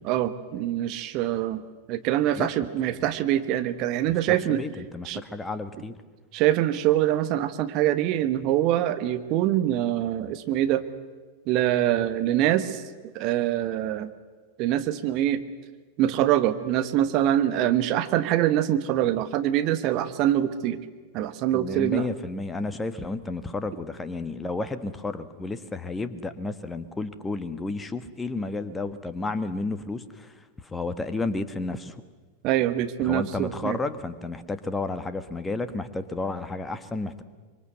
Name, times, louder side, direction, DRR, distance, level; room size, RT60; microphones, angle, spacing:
voice 1, 0.0-1.6 1.9-4.6 5.0-5.2 6.3-10.8 11.5-12.8 13.1-14.1 14.6-15.4 16.0-20.8 21.1-22.1 32.4-33.8, right 12 dB, 40° right, 10 dB, 1.3 m, -24 dB
voice 2, 4.1-6.0 21.5-32.0 33.0-37.2, left 3 dB, 10° left, 10 dB, 1.5 m, -32 dB
25.5 x 23.0 x 8.1 m, 1.4 s
figure-of-eight pair, 90°, 0 cm